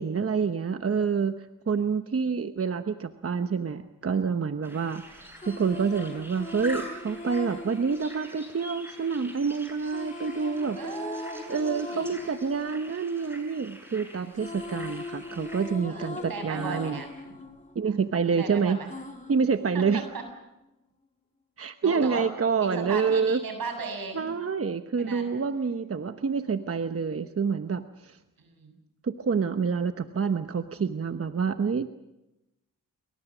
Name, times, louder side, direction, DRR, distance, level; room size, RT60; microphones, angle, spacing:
voice 1, 0.0-10.8 11.5-17.0 17.7-18.8 19.3-20.0 21.6-23.4 24.1-28.2 29.0-31.9, right 5 dB, 40° right, 9 dB, 1.1 m, -27 dB
sound 1, 4.6-15.7, equal, 5° right, 7.8 m, -46 dB
sound 2, 5.1-9.2 9.8-13.9 14.1-18.4 18.9-20.3, left 3 dB, 20° left, 2.9 m, -41 dB
voice 2, 10.8-12.2 14.1-14.4 15.8-17.4 17.8-18.0 18.4-18.9 19.7-20.2 21.8-22.3 22.6-24.3 25.0-25.3 28.4-28.7, right 4 dB, 80° right, 5 dB, 7.3 m, -37 dB
28.0 x 23.5 x 6.2 m, 0.95 s
cardioid pair, 75°, 35 cm